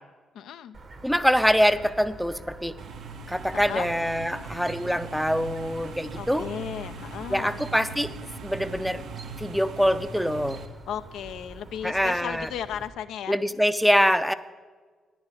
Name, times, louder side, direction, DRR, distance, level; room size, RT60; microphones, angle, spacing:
voice 1, 0.3-0.8 3.5-3.9 6.2-7.6 10.9-13.4, left 9 dB, 75° left, 10 dB, 0.4 m, -35 dB
Chirp tweet, 0.7-12.9, right 3 dB, 55° right, 1.6 m, -46 dB
voice 2, 1.0-2.7 3.3-6.5 7.3-8.1 8.4-9.0 9.4-10.6 11.8-12.5 13.3-14.3, equal, ahead, 11 dB, 0.6 m, -24 dB
sound 1, 2.8-10.7, right 4 dB, 70° right, 0.8 m, -40 dB
10.5 x 9.7 x 4.8 m, 1.5 s
hypercardioid pair, 50°, 0 cm